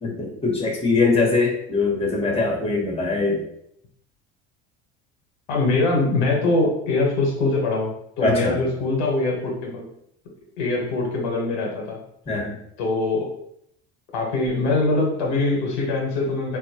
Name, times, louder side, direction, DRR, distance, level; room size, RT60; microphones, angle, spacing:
voice 1, 0.0-3.4 8.2-8.6 12.3-12.6, left 3 dB, 20° left, -1 dB, 1.1 m, -22 dB
voice 2, 5.5-7.9 8.2-9.8 10.6-12.0 12.8-13.3 14.1-16.6, left 2 dB, 85° left, -1 dB, 1.0 m, -23 dB
4.0 x 2.3 x 2.8 m, 0.72 s
supercardioid pair, 80°, 34 cm